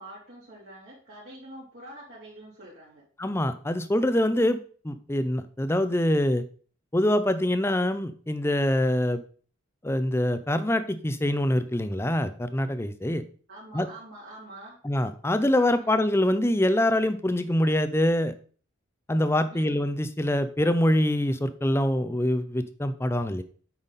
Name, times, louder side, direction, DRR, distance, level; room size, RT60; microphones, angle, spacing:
voice 1, 0.0-3.0 13.5-14.8 15.7-16.0 19.5-19.8, right 1 dB, 60° right, -9 dB, 3.0 m, -45 dB
voice 2, 3.2-4.6 4.8-6.4 6.9-9.2 9.8-13.2 13.7-13.9 14.8-18.3 19.1-23.4, left 1 dB, 10° left, 11 dB, 0.5 m, -24 dB
8.8 x 5.7 x 4.1 m, 0.43 s
head